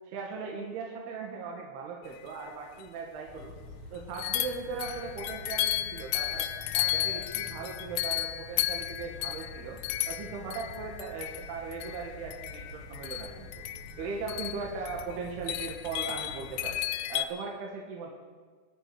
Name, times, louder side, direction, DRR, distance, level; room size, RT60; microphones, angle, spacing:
voice 1, 0.1-3.5 3.9-6.5 6.7-9.8 10.1-13.6 14.0-16.8 17.1-18.1, right 4 dB, 75° right, -1 dB, 3.5 m, -38 dB
sound 1, 2.5-2.6 2.8-2.9 4.1-17.3, left 14 dB, 80° left, 2.5 m, -34 dB
sound 2, 3.3-16.9, left 1 dB, 50° right, 1.7 m, -47 dB
25.5 x 9.5 x 4.8 m, 1.5 s
omnidirectional pair, 4.7 m